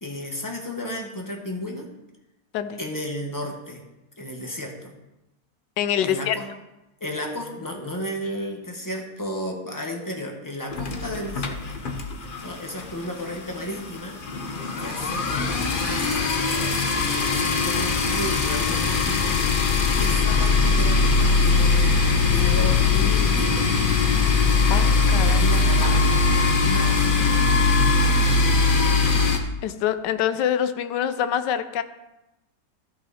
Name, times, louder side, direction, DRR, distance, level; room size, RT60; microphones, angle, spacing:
voice 1, 0.0-1.9 2.8-3.8 4.2-4.9 6.0-6.5 7.0-11.8 12.2-14.2 14.8-19.7 20.0-23.9 25.1-27.9, equal, 15° left, 1 dB, 1.2 m, -34 dB
voice 2, 5.8-6.4 24.7-25.4 29.6-31.8, left 9 dB, 90° left, 11 dB, 1.3 m, -25 dB
sound 1, 10.7-12.5 12.8-13.0 13.3-13.4 13.6-29.4, left 4 dB, 40° left, 0.8 m, -21 dB
13.5 x 5.6 x 4.2 m, 0.95 s
omnidirectional pair, 1.8 m